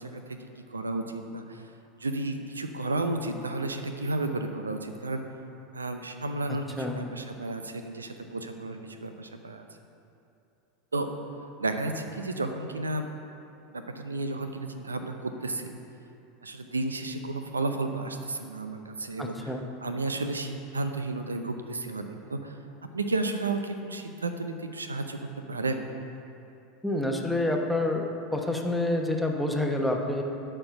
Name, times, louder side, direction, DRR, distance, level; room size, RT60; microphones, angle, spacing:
voice 1, 0.0-1.6 2.0-5.2 5.7-9.6 10.9-11.1 11.6-13.1 13.7-15.7 16.4-19.5 19.8-22.6 22.9-25.2 25.5-25.9, right 2 dB, 85° right, 7 dB, 0.6 m, -32 dB
voice 2, 19.2-19.6 26.8-28.0 28.3-30.2, left 1 dB, ahead, 1 dB, 1.1 m, -27 dB
12.0 x 4.5 x 5.8 m, 2.8 s
figure-of-eight pair, 80°, 0 cm